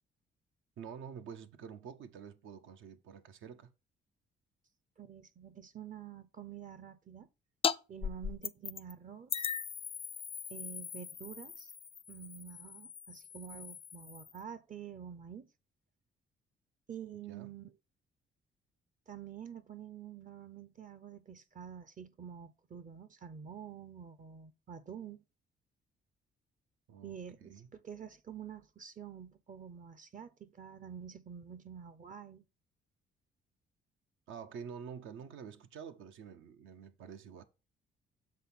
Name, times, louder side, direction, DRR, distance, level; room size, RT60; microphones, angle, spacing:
voice 1, 0.8-3.7 17.3-17.5 26.9-27.7 34.3-37.4, right 7 dB, 80° right, 0.8 m, -48 dB
voice 2, 5.0-7.3 7.9-9.5 10.5-11.7 12.1-15.5 16.9-17.7 19.1-25.2 27.0-32.4, right 8 dB, 40° right, 0.6 m, -48 dB
sound 1, 7.6-7.8 8.0-8.9 9.3-14.4, left 7 dB, 30° left, 0.4 m, -39 dB
7.6 x 3.5 x 5.7 m
cardioid pair, 90°, 20 cm